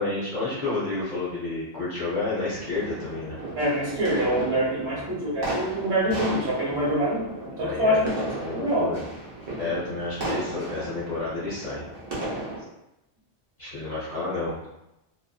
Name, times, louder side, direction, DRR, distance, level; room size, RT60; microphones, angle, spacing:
voice 1, 0.0-3.4 4.8-5.2 6.7-6.9 7.6-8.0 8.4-9.0 9.6-11.8 13.6-14.7, left 3 dB, 45° left, -9 dB, 0.7 m, -30 dB
sound 1, 2.4-12.6, right 2 dB, 40° right, 0.8 m, -35 dB
voice 2, 3.5-8.1 8.5-8.9, equal, 60° right, -6 dB, 1.1 m, -25 dB
2.5 x 2.4 x 2.3 m, 0.89 s
omnidirectional pair, 1.3 m